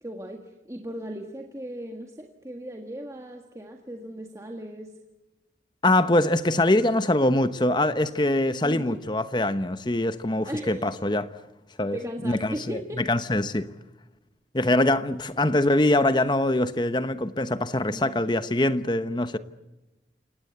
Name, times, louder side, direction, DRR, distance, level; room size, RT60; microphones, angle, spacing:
voice 1, 0.0-5.0 8.6-9.0 10.4-11.0 11.9-13.1 17.9-18.3, equal, 15° right, 1.7 m, -37 dB
voice 2, 5.8-11.3 11.8-12.0 12.2-12.8 13.1-13.7 14.5-19.4, left 1 dB, 25° left, 1.0 m, -23 dB
29.0 x 18.0 x 8.1 m
head